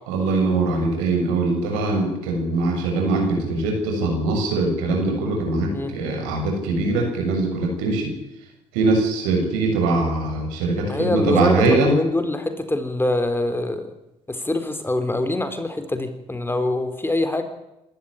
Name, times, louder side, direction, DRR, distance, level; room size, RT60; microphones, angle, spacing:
voice 1, 0.1-8.1 8.7-11.9, right 3 dB, 75° right, 2 dB, 7.0 m, -22 dB
voice 2, 10.9-13.9 14.3-17.4, left 2 dB, 15° left, 9 dB, 4.0 m, -24 dB
26.0 x 13.5 x 9.9 m, 0.90 s
hypercardioid pair, 50°, 15 cm